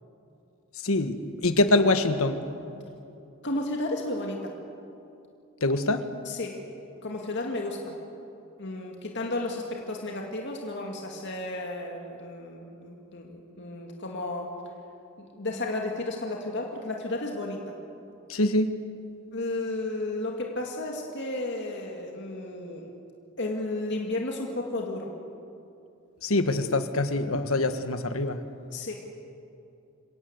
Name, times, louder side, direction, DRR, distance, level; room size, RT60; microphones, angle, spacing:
voice 1, 0.8-2.4 5.6-6.0 18.3-18.7 26.2-28.4, left 2 dB, 85° left, 9 dB, 1.4 m, -24 dB
voice 2, 3.4-4.5 6.2-6.6 7.0-8.0 8.6-14.5 15.2-17.7 19.3-22.9 23.4-25.1 28.7-28.9, left 2 dB, 55° left, 0 dB, 2.3 m, -33 dB
27.5 x 17.5 x 8.1 m, 2.7 s
head